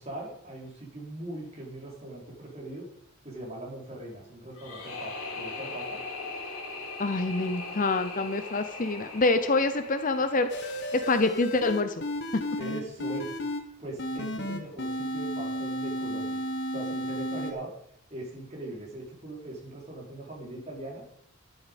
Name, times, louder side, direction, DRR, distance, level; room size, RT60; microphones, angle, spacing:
voice 1, 0.0-2.9 3.2-6.0 12.6-13.4 13.8-16.4 16.7-17.7 18.1-21.0, right 1 dB, 30° right, -3 dB, 4.0 m, -40 dB
sound 1, 4.5-11.5, left 3 dB, 75° left, 3.5 m, -40 dB
voice 2, 7.0-10.5 10.9-12.0 12.3-12.4, left 3 dB, 40° left, 10 dB, 0.8 m, -26 dB
sound 2, 10.5-13.6 14.0-17.5, equal, 55° left, 1.6 m, -33 dB
11.5 x 11.0 x 5.3 m, 0.73 s
head